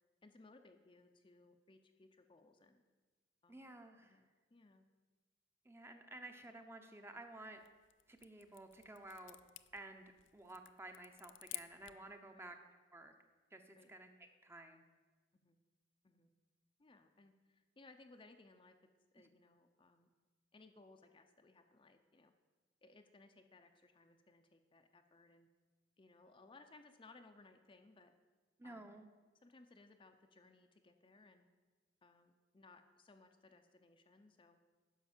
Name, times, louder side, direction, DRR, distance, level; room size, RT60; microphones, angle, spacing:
voice 1, 0.2-2.8 3.4-3.7 4.0-4.9 12.3-12.5 13.8-13.9 15.4-15.6 16.0-16.3 16.8-18.7 19.1-20.1 20.5-22.3 22.8-25.5 26.0-28.1 28.6-29.0 29.4-31.5 32.0-34.6, left 3 dB, 30° left, 6 dB, 0.6 m, -63 dB
voice 2, 3.5-4.2 5.7-7.6 8.1-9.4 9.7-10.0 10.3-12.6 12.9-13.1 13.5-14.1 14.4-14.8 19.2-19.3 28.6-29.1, right 2 dB, 15° right, 6 dB, 0.7 m, -53 dB
sound 1, 7.4-12.1, left 17 dB, 80° left, 0.4 m, -54 dB
10.5 x 5.9 x 7.3 m, 1.3 s
head